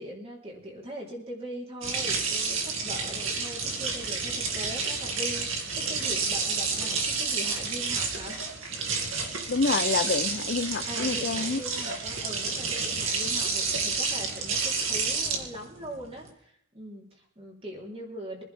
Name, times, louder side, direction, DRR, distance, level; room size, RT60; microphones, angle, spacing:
voice 1, 0.0-8.4 10.9-18.4, equal, 25° right, 3.7 m, -41 dB
sound 1, 1.8-16.3, right 4 dB, 65° right, 2.6 m, -30 dB
voice 2, 9.5-11.6, left 4 dB, 45° left, 0.6 m, -27 dB
24.0 x 11.0 x 3.6 m
head